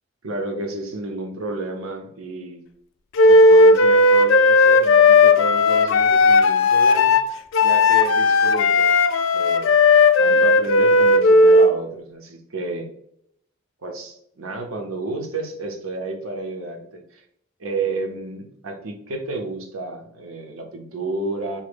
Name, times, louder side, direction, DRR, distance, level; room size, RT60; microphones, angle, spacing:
voice 1, 0.2-2.6 3.3-7.2 7.6-8.9 9.3-9.7 10.2-12.9 13.8-17.2 17.6-21.6, right 2 dB, 85° right, 3 dB, 0.8 m, -31 dB
Wind instrument woodwind instrument, 3.2-11.7, left 2 dB, 65° left, 0.3 m, -15 dB
3.7 x 2.1 x 3.5 m, 0.73 s
head